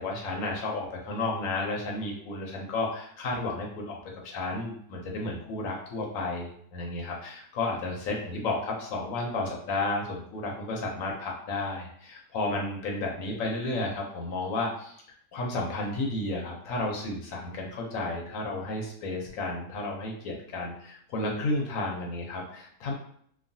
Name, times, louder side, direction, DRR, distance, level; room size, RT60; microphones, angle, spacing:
voice 1, 0.0-4.0 4.2-15.0 15.3-22.9, left 2 dB, 65° left, 0 dB, 0.8 m, -32 dB
3.0 x 2.3 x 2.6 m, 0.64 s
omnidirectional pair, 1.8 m